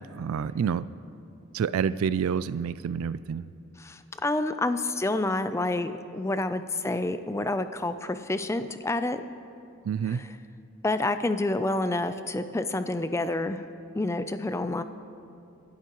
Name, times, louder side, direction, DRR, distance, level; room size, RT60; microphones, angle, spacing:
voice 1, 0.1-0.9 1.5-3.4 9.9-10.3, right 7 dB, 85° right, 15 dB, 0.3 m, -28 dB
voice 2, 3.8-9.2 10.0-10.4 10.8-13.6 13.9-14.8, left 2 dB, 15° left, 10 dB, 0.4 m, -28 dB
26.5 x 11.5 x 3.0 m, 2.6 s
head